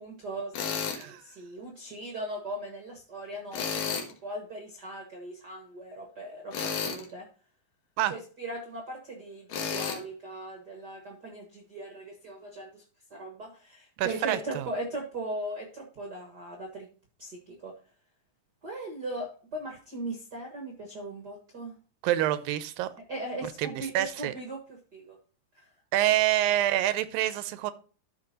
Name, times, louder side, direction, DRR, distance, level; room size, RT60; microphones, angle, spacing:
voice 1, 0.0-7.3 8.1-12.8 13.1-16.9 17.2-17.7 18.6-21.8 23.1-25.2 25.5-25.7, right 1 dB, 55° right, 2 dB, 1.1 m, -39 dB
Tools, 0.5-1.0 3.5-4.1 6.5-7.0 9.5-10.0, left 6 dB, 70° left, 2.8 m, -31 dB
voice 2, 14.0-14.7 22.0-22.9 23.6-24.3 25.9-27.7, right 13 dB, 85° right, 14 dB, 2.4 m, -27 dB
13.5 x 5.2 x 2.7 m, 0.39 s
omnidirectional pair, 4.1 m